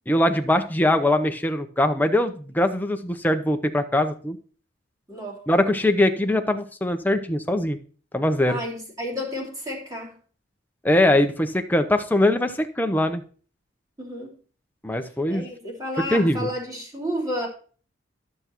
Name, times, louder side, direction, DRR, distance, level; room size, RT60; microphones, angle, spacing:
voice 1, 0.1-4.4 5.5-7.8 8.1-8.6 10.8-13.2 14.8-15.5 16.1-16.5, left 1 dB, 10° left, 0.7 m, -22 dB
voice 2, 5.1-5.4 8.5-10.1 14.0-14.3 15.3-17.5, equal, 20° right, 2.9 m, -31 dB
13.0 x 6.7 x 3.0 m
head